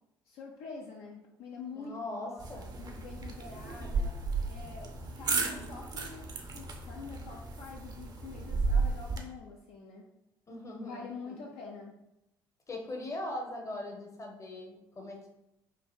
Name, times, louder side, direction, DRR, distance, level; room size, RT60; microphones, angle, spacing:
voice 1, 0.3-2.5 2.8-4.1 4.5-10.1 10.8-12.0, left 4 dB, 60° left, -1 dB, 0.4 m, -46 dB
voice 2, 1.7-2.7 10.5-11.4 12.7-15.3, left 1 dB, 25° left, 1 dB, 0.7 m, -40 dB
sound 1, 2.4-9.2, right 4 dB, 35° right, 0.5 m, -34 dB
3.2 x 2.4 x 2.3 m, 0.87 s
figure-of-eight pair, 50°, 11 cm